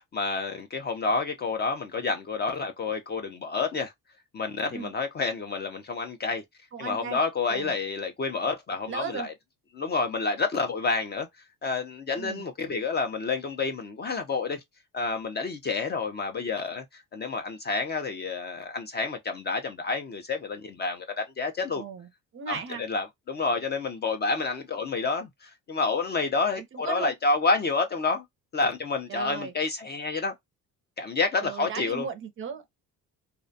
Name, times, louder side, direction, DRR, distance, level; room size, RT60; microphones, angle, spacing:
voice 1, 0.1-3.9 4.3-6.4 6.8-9.3 9.7-11.3 11.6-14.6 14.9-21.8 22.5-28.2 28.5-30.3 31.0-32.1, left 4 dB, 30° left, 0.4 m, -29 dB
voice 2, 6.7-7.2 7.5-7.7 8.9-9.3 12.2-12.5 21.7-22.1 22.3-22.8 26.6-27.1 29.1-29.5 31.4-32.8, right 6 dB, 35° right, 0.4 m, -36 dB
2.4 x 2.1 x 2.5 m
cardioid pair, 165°, 35 cm